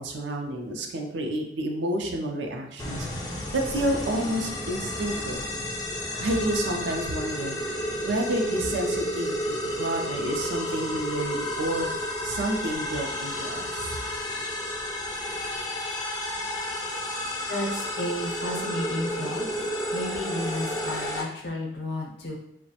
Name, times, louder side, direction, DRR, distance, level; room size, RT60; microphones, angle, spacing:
voice 1, 0.0-5.4 6.2-7.6 8.0-11.9 12.2-14.0, right 1 dB, 75° right, 2 dB, 0.4 m, -30 dB
sound 1, 2.8-21.2, left 1 dB, 20° left, 0.3 m, -31 dB
voice 2, 17.5-19.4 19.9-22.4, left 1 dB, 70° left, -1 dB, 0.6 m, -32 dB
2.3 x 2.0 x 2.7 m, 0.77 s
head